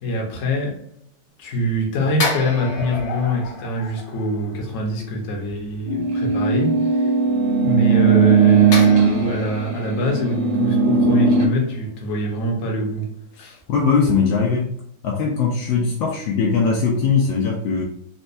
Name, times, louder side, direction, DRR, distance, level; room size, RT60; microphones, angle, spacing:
voice 1, 0.0-0.8 1.4-7.1 7.6-13.6, equal, 55° left, -1 dB, 0.9 m, -24 dB
sound 1, 2.2-4.9 8.7-11.9 12.2-12.4, left 3 dB, 90° left, 1.7 m, -31 dB
sound 2, 5.9-11.5, right 5 dB, 80° right, 0.9 m, -18 dB
voice 2, 13.7-14.7 15.0-17.8, left 5 dB, 75° left, -1 dB, 1.2 m, -20 dB
4.2 x 2.3 x 2.6 m, 0.70 s
omnidirectional pair, 2.4 m